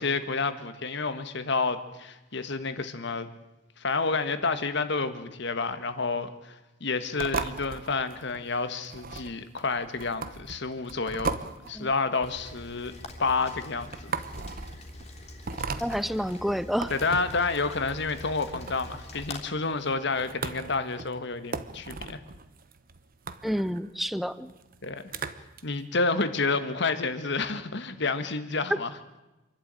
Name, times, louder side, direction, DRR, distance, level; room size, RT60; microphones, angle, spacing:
voice 1, 0.0-3.3 3.8-6.5 6.8-11.4 11.7-12.9 13.2-14.1 16.9-22.2 24.8-25.0 25.6-28.9, left 4 dB, 65° left, 10 dB, 1.6 m, -29 dB
sound 1, 7.2-25.6, right 4 dB, 50° right, 1.1 m, -38 dB
Rain, 12.3-19.4, left 2 dB, 35° left, 3.4 m, -44 dB
voice 2, 15.8-16.9 23.4-24.5, equal, ahead, 14 dB, 0.7 m, -29 dB
27.0 x 12.0 x 9.0 m, 1.0 s
head